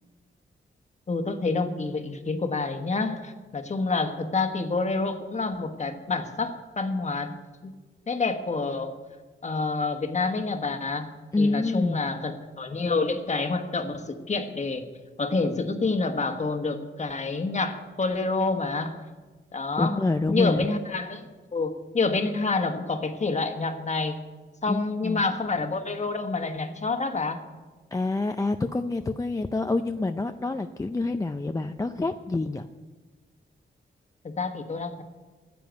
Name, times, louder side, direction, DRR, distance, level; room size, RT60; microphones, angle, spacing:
voice 1, 1.1-7.3 7.6-7.7 8.1-8.9 9.4-11.1 11.4-14.8 15.2-19.0 19.5-20.0 20.3-24.2 24.6-27.4 34.2-35.0, left 3 dB, 35° left, 6 dB, 1.3 m, -28 dB
voice 2, 11.3-12.0 19.8-20.7 24.7-25.2 27.9-32.7, left 3 dB, 15° left, 6 dB, 0.4 m, -27 dB
10.0 x 7.7 x 9.3 m, 1.3 s
cardioid pair, 95°, 20 cm